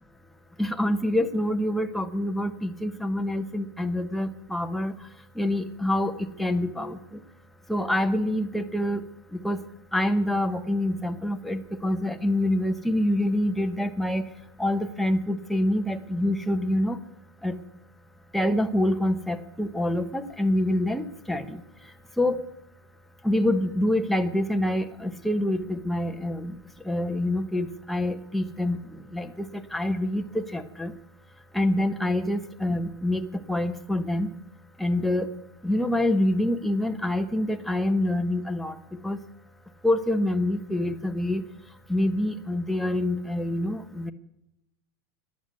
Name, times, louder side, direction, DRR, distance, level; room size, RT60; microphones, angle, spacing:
voice 1, 0.6-4.9 5.4-7.0 7.7-9.1 9.3-9.6 9.9-14.2 14.6-17.0 17.4-17.6 18.3-21.6 22.2-22.4 23.2-26.5 26.9-28.8 29.1-29.5 29.7-30.9 31.5-34.3 34.8-35.3 35.6-38.7 39.0-39.2 39.8-41.4 41.9-44.1, left 1 dB, ahead, 6 dB, 0.9 m, -26 dB
13.5 x 9.9 x 9.4 m, 0.86 s
supercardioid pair, 135°, 13 cm